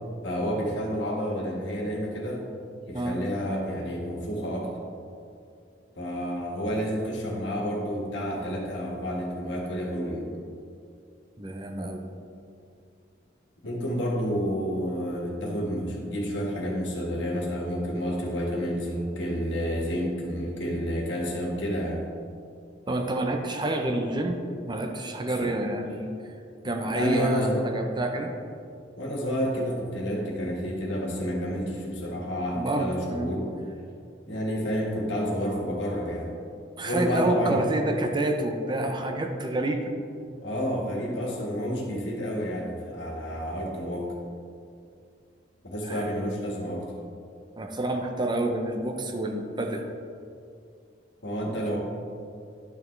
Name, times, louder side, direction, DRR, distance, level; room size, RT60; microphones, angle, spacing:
voice 1, 0.2-2.4 2.8-4.7 5.9-10.3 13.6-22.1 25.4-25.5 26.9-27.7 29.0-33.5 34.3-36.3 36.8-37.6 40.4-44.1 45.6-46.9 51.2-51.8, equal, 85° left, -1 dB, 1.7 m, -30 dB
voice 2, 11.4-12.0 22.9-26.1 26.6-28.3 32.6-33.3 36.8-39.9 45.8-46.1 47.6-49.8 51.5-51.8, right 2 dB, 25° right, 4 dB, 0.7 m, -28 dB
10.5 x 6.8 x 3.3 m, 2.4 s
head